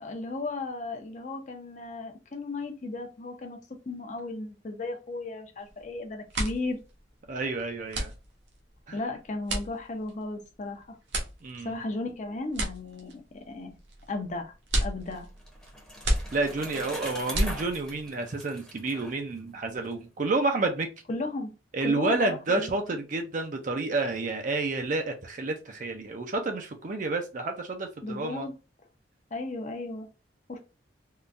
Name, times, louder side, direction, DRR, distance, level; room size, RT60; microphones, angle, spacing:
voice 1, 0.0-3.6 3.9-6.8 8.9-11.0 11.6-13.8 14.1-14.5 14.8-15.3 21.1-21.5 21.8-22.7 28.0-28.5 29.3-30.1 30.5-30.6, left 2 dB, 40° left, 0.6 m, -35 dB
sound 1, 5.6-5.9 6.2-18.1, right 1 dB, 70° right, 0.9 m, -33 dB
voice 2, 7.3-8.1 8.9-9.0 11.4-11.8 16.3-20.9 21.7-28.5, right 3 dB, 45° right, 0.5 m, -30 dB
Bicycle, 15.1-19.9, equal, 5° left, 0.8 m, -42 dB
3.7 x 2.2 x 2.5 m
head